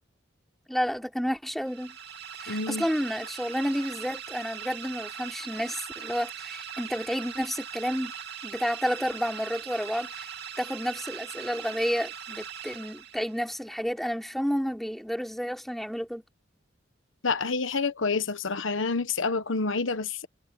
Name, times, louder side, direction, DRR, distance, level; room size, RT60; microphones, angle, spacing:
voice 1, 0.7-2.0 2.4-8.1 8.4-10.3 10.6-16.2, equal, ahead, 3.5 m, -30 dB
sound 1, 1.6-13.5, right 8 dB, 55° right, 2.5 m, -40 dB
voice 2, 2.5-2.9 17.2-20.3, left 4 dB, 80° left, 1.2 m, -28 dB
head